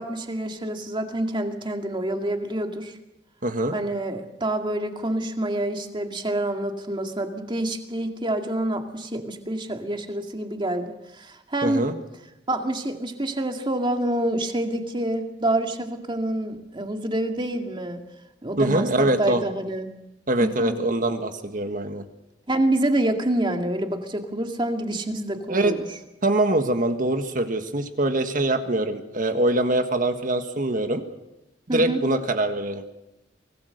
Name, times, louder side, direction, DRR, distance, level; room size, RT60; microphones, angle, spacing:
voice 1, 0.0-2.9 3.7-11.9 12.5-18.0 18.4-19.9 20.4-20.8 22.5-25.8 31.7-32.0, right 1 dB, 25° right, 4 dB, 2.2 m, -27 dB
voice 2, 3.4-3.8 11.6-11.9 18.6-19.4 20.3-22.0 25.5-25.7 26.2-31.0 31.7-32.8, right 1 dB, 50° right, 7 dB, 1.7 m, -23 dB
24.5 x 18.5 x 6.7 m, 0.94 s
head